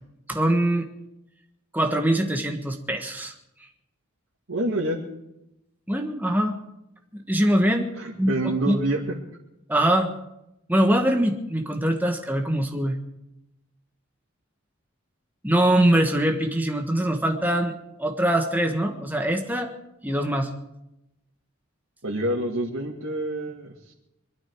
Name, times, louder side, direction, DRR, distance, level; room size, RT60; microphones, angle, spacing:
voice 1, 0.3-0.9 1.7-3.3 5.9-6.6 7.1-7.9 8.2-8.8 9.7-10.1 10.7-13.0 15.4-19.7 20.0-20.5, right 1 dB, 10° right, 3 dB, 1.5 m, -23 dB
voice 2, 4.5-5.0 8.0-9.2 22.0-23.9, right 1 dB, 85° right, -3 dB, 2.1 m, -27 dB
23.0 x 13.0 x 4.7 m, 0.85 s
head